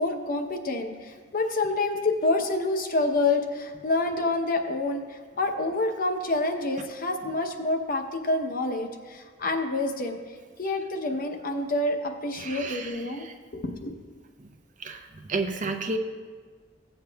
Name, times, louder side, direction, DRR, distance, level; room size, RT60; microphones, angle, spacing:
voice 1, 0.0-10.2 10.6-13.3 13.5-13.9, left 2 dB, 50° left, 5 dB, 0.8 m, -27 dB
voice 2, 12.3-13.3 14.4-14.5 14.8-16.0, right 3 dB, 45° right, 5 dB, 0.7 m, -32 dB
16.0 x 8.0 x 2.3 m, 1.5 s
head